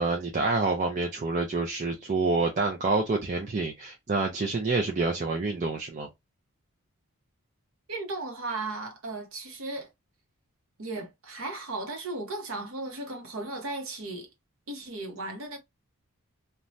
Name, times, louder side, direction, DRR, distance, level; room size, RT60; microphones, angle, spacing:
voice 1, 0.0-6.1, right 3 dB, 35° right, 0.4 m, -27 dB
voice 2, 7.9-9.9 10.8-14.3 14.7-15.6, right 2 dB, 65° right, 0.8 m, -36 dB
2.6 x 2.2 x 3.0 m
head